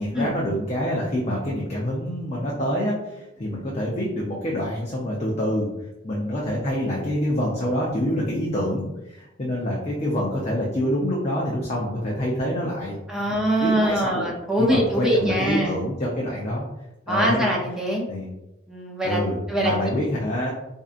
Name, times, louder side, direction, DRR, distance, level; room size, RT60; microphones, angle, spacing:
voice 1, 0.0-5.7 6.0-14.2 14.6-16.6 17.1-17.5 18.1-18.3 19.0-20.5, equal, 35° left, -4 dB, 0.6 m, -26 dB
voice 2, 13.1-15.7 17.1-18.0 18.7-19.2 19.5-19.7, equal, 5° right, -3 dB, 0.7 m, -23 dB
4.5 x 2.7 x 2.4 m, 0.94 s
head